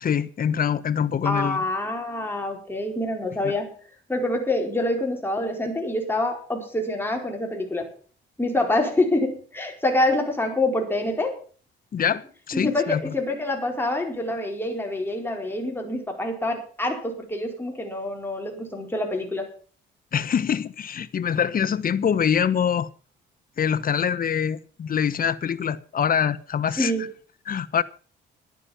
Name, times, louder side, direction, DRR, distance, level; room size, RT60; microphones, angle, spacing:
voice 1, 0.0-1.6 3.4-3.5 11.9-13.1 20.1-22.9 23.6-26.9 27.5-27.8, left 8 dB, 45° left, 1.0 m, -24 dB
voice 2, 1.2-3.7 4.1-7.9 8.4-11.4 12.5-19.5 26.8-27.0, left 1 dB, 10° left, 4.5 m, -26 dB
11.5 x 9.8 x 7.2 m
cardioid pair, 90°, 20 cm